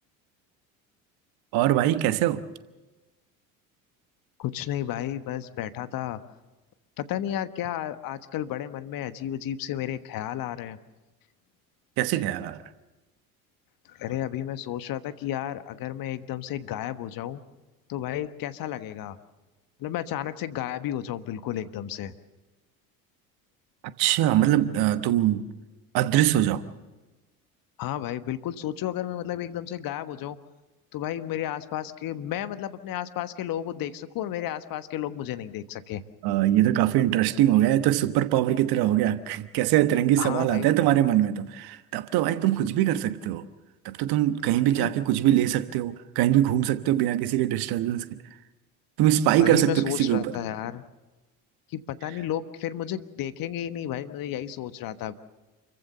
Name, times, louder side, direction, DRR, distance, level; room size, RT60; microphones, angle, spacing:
voice 1, 1.5-2.4 12.0-12.6 24.0-25.5 25.9-26.6 36.2-43.4 43.8-48.2 49.0-50.3, right 13 dB, 60° right, 1.3 m, -23 dB
voice 2, 4.4-6.2 7.0-10.8 13.9-17.4 17.9-19.2 19.8-22.1 27.8-30.4 30.9-36.0 40.2-40.7 44.7-44.9 49.4-50.8 51.7-55.1, left 11 dB, 50° left, 1.4 m, -32 dB
28.5 x 15.0 x 6.7 m
hypercardioid pair, 65°, 44 cm